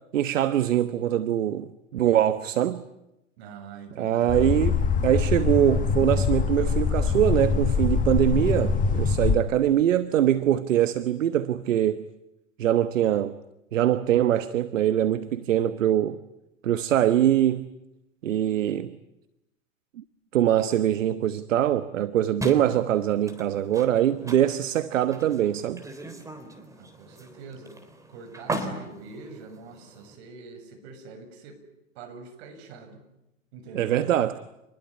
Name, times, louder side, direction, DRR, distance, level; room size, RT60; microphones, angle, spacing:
voice 1, 0.1-2.8 4.0-12.0 12.6-13.4 13.7-16.2 16.6-17.7 18.2-19.0 20.3-25.8 33.7-34.4, right 11 dB, 70° right, 1.3 m, -23 dB
voice 2, 3.4-4.5 26.8-27.8 28.1-31.6 32.0-33.0 33.5-34.1, right 4 dB, 55° right, 7.0 m, -44 dB
sound 1, 4.3-9.4, left 5 dB, 20° left, 1.4 m, -24 dB
sound 2, 22.4-30.1, right 1 dB, 10° right, 3.8 m, -38 dB
27.5 x 21.5 x 9.8 m
hypercardioid pair, 115°, 39 cm